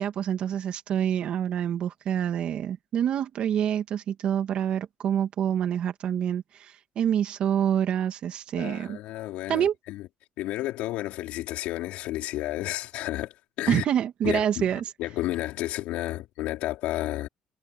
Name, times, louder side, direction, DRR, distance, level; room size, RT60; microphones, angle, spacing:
voice 1, 0.0-9.0 9.5-9.7 13.7-14.8, right 9 dB, 55° right, 2.5 m, -27 dB
voice 2, 8.6-10.1 10.4-13.8 14.2-17.3, left 16 dB, 80° left, 4.9 m, -32 dB
cardioid pair, 130°, 2 cm